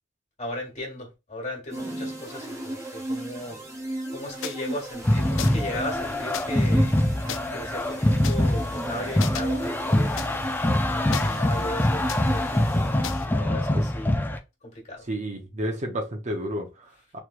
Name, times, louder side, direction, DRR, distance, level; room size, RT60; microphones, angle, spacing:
voice 1, 0.4-6.9 7.5-12.7 13.3-14.1 14.6-15.0, left 1 dB, 40° left, 1.4 m, -37 dB
sound 1, 1.7-13.5, right 1 dB, 15° right, 1.1 m, -35 dB
sound 2, 4.4-4.6 5.4-5.7 6.3-6.4 7.3-7.4 8.2-8.3 9.2-9.4 10.2-10.3 11.1-11.7 12.1-12.2 13.0-13.3, left 10 dB, 90° left, 0.4 m, -34 dB
sound 3, 5.0-14.4, left 1 dB, 10° left, 0.3 m, -24 dB
voice 2, 15.1-17.2, right 1 dB, 40° right, 0.7 m, -31 dB
3.2 x 3.1 x 2.4 m
head